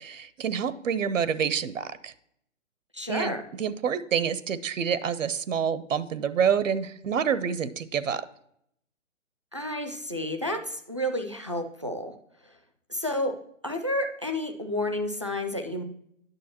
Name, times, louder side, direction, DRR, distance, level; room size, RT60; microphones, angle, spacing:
voice 1, 0.0-2.1 3.1-8.2, right 7 dB, 75° right, 16 dB, 0.7 m, -27 dB
voice 2, 2.9-3.4 9.5-12.2 12.4-12.5 12.9-13.4 13.6-15.8, left 1 dB, 25° right, 5 dB, 0.3 m, -30 dB
9.1 x 6.6 x 2.9 m, 0.71 s
hypercardioid pair, 155°, 39 cm